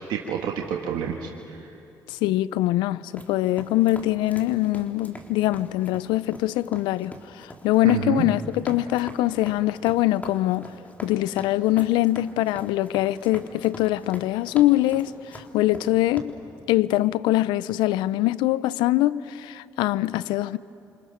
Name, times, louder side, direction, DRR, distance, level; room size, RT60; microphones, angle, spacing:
voice 1, 0.1-1.7 7.8-8.2, right 8 dB, 80° right, 1.5 m, -29 dB
voice 2, 2.1-10.7 11.0-16.3 16.7-20.6, left 16 dB, 85° left, 0.5 m, -23 dB
sound 1, 3.1-16.2, left 1 dB, 20° left, 3.8 m, -42 dB
29.0 x 26.0 x 6.5 m
supercardioid pair, 60°, 8 cm